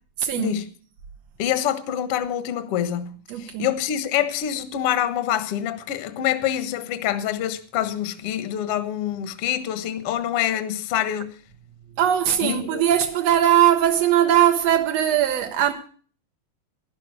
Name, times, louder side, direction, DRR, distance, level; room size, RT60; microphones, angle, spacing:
voice 1, 0.2-0.6 3.3-3.7 12.0-15.7, right 11 dB, 70° right, 1.6 m, -20 dB
voice 2, 1.4-11.3 12.4-12.8, left 11 dB, 60° left, 1.6 m, -26 dB
12.5 x 11.5 x 6.3 m
omnidirectional pair, 4.2 m